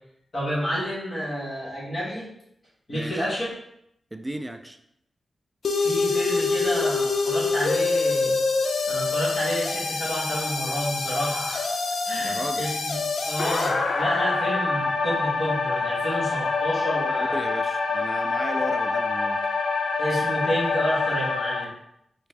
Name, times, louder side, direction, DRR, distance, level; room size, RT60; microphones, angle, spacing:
voice 1, 0.3-2.3 2.9-3.5 5.8-8.4 8.9-11.8 12.0-13.0 13.2-17.4 20.0-21.7, equal, 55° left, -9 dB, 1.3 m, -30 dB
voice 2, 2.9-3.2 4.1-4.8 12.2-12.7 17.2-19.5, right 1 dB, 15° right, 7 dB, 0.3 m, -35 dB
sound 1, 5.6-21.6, left 4 dB, 75° left, 0.4 m, -25 dB
3.4 x 2.3 x 3.2 m, 0.77 s
cardioid pair, 70°, 0 cm